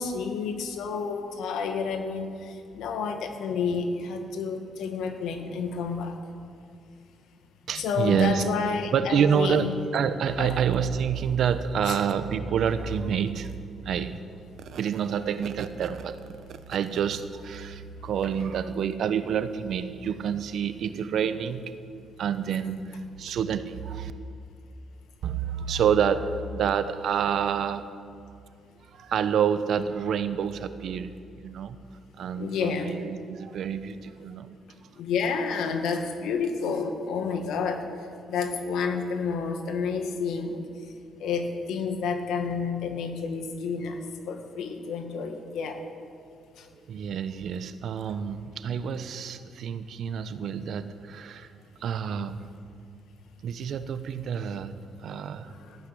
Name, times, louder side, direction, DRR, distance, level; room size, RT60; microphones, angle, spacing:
voice 1, 0.0-6.1 7.8-9.7 10.4-10.6 11.9-12.0 32.3-32.9 35.0-37.8 38.3-40.6 41.2-44.0 44.3-45.8 46.6-46.7 55.7-55.8, left 5 dB, 85° left, 5 dB, 1.8 m, -30 dB
voice 2, 7.7-8.4 8.9-14.2 14.6-21.7 22.2-24.1 25.2-27.9 28.9-31.1 31.4-31.8 32.2-34.6 46.9-51.5 51.8-52.4 53.4-54.7 55.0-55.5, right 7 dB, 70° right, 12 dB, 0.9 m, -28 dB
15.0 x 9.1 x 9.8 m, 2.4 s
cardioid pair, 90°, 0 cm